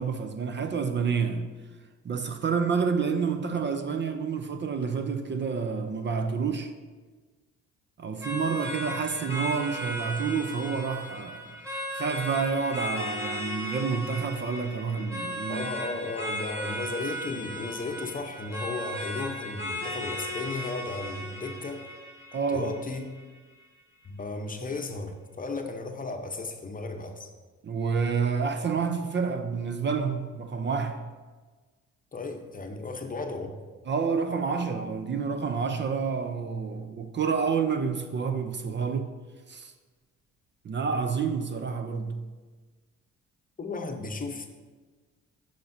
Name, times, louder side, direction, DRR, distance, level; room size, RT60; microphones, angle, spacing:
voice 1, 0.0-1.5 2.0-6.7 8.0-11.6 11.9-15.7 22.3-22.8 27.6-31.1 33.9-39.1 39.5-39.7 40.6-42.3, right 5 dB, 40° right, 0.5 m, -29 dB
sound 1, 8.2-23.2, equal, 10° right, 2.3 m, -36 dB
voice 2, 15.5-21.9 22.5-23.1 24.0-27.3 32.1-33.5 43.6-44.5, left 3 dB, 30° left, 0.8 m, -35 dB
11.5 x 5.0 x 2.7 m
cardioid pair, 90°, 30 cm